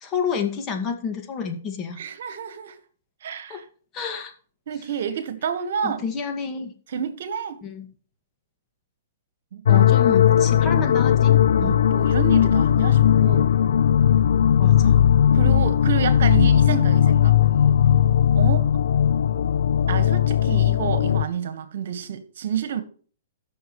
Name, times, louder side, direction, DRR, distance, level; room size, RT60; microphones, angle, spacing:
voice 1, 0.0-2.0 3.5-3.6 3.9-4.3 5.8-6.7 7.6-7.9 9.7-11.3 11.6-11.8 14.6-15.0, left 6 dB, 25° left, 2.0 m, -29 dB
voice 2, 2.0-2.8 3.2-3.6 4.7-6.0 6.9-7.6 9.5-9.8 11.6-13.5 15.3-17.4 18.3-18.7 19.9-22.8, right 8 dB, 70° right, 1.4 m, -29 dB
sound 1, 9.7-21.2, left 9 dB, 80° left, 0.3 m, -18 dB
14.5 x 6.4 x 3.2 m
hypercardioid pair, 135°, 0 cm